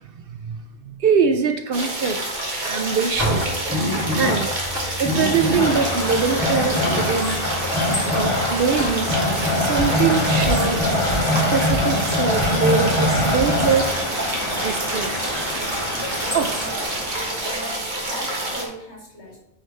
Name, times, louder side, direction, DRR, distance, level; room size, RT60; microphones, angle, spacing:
voice 1, 0.0-2.2 2.6-3.4 4.1-4.5 5.0-7.4 8.1-9.1 9.5-10.9 11.3-14.0 14.6-15.4 16.3-16.5, right 6 dB, 60° right, 6 dB, 0.7 m, -23 dB
sound 1, 1.7-18.6, right 1 dB, 40° right, 1.4 m, -28 dB
sound 2, 3.1-13.9, left 1 dB, 90° right, 3.6 m, -23 dB
sound 3, 5.6-17.4, left 1 dB, 25° left, 1.6 m, -30 dB
voice 2, 16.3-16.7 17.4-19.4, equal, 70° left, -4 dB, 2.9 m, -38 dB
8.8 x 4.7 x 3.3 m, 0.81 s
omnidirectional pair, 1.2 m